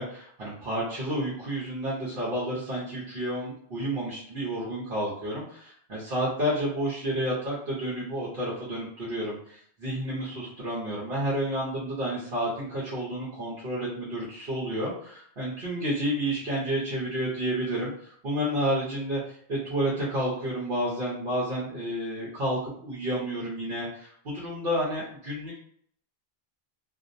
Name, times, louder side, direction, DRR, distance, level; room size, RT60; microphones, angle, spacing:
voice 1, 0.0-19.2 19.5-25.6, equal, 60° right, -7 dB, 1.0 m, -30 dB
2.5 x 2.0 x 2.5 m, 0.62 s
omnidirectional pair, 1.1 m